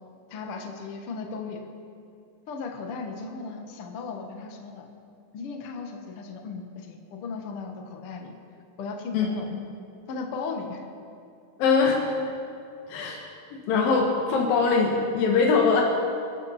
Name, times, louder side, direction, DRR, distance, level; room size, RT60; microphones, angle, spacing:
voice 1, 0.3-1.6 2.5-4.9 5.3-8.3 8.8-9.5 10.1-10.8, left 4 dB, 55° left, 3 dB, 1.8 m, -36 dB
voice 2, 11.6-12.0 12.9-13.2 13.5-15.8, left 5 dB, 90° left, 0 dB, 3.1 m, -22 dB
25.5 x 13.0 x 4.2 m, 2.5 s
omnidirectional pair, 3.9 m